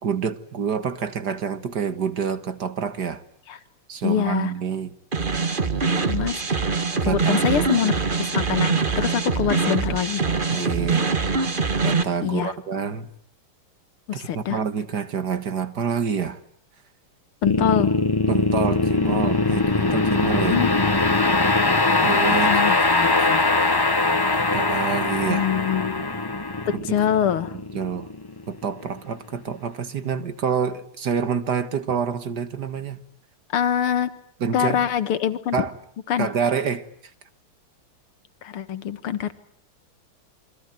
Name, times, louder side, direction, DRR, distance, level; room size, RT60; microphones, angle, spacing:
voice 1, 0.0-3.2 3.9-5.0 7.0-7.9 10.5-11.1 11.8-13.1 14.1-16.4 18.3-20.6 22.0-22.6 24.3-25.5 26.7-27.0 27.7-28.1 28.5-33.0 34.4-34.9 35.5-35.7 36.2-36.9, right 6 dB, 50° right, 12 dB, 1.9 m, -27 dB
voice 2, 4.0-4.5 6.1-6.4 7.1-7.9 8.2-10.2 12.2-12.5 14.1-14.6 17.4-18.0 20.5-20.7 22.5-23.4 25.3-26.0 26.8-27.5 33.5-34.1 34.5-35.7 36.1-36.3 38.4-39.3, left 9 dB, 80° left, 12 dB, 2.3 m, -24 dB
sound 1, 5.1-12.0, right 4 dB, 25° right, 1.5 m, -23 dB
sound 2, 17.4-28.6, left 3 dB, 25° left, 0.5 m, -21 dB
28.5 x 23.0 x 9.1 m, 0.63 s
omnidirectional pair, 2.4 m